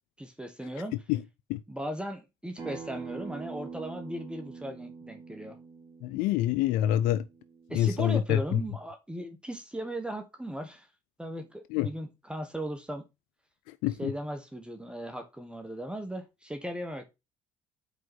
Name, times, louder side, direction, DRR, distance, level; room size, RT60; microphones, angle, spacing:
voice 1, 0.2-1.0 1.7-5.6 7.7-10.9 11.2-13.0 14.0-17.1, equal, 5° right, 1.3 m, -37 dB
Acoustic guitar, 2.6-7.8, right 5 dB, 20° right, 2.9 m, -44 dB
voice 2, 6.0-7.2 7.7-8.6 11.7-11.9 13.8-14.1, left 12 dB, 80° left, 0.4 m, -26 dB
5.1 x 4.5 x 6.1 m
supercardioid pair, 70°, 14 cm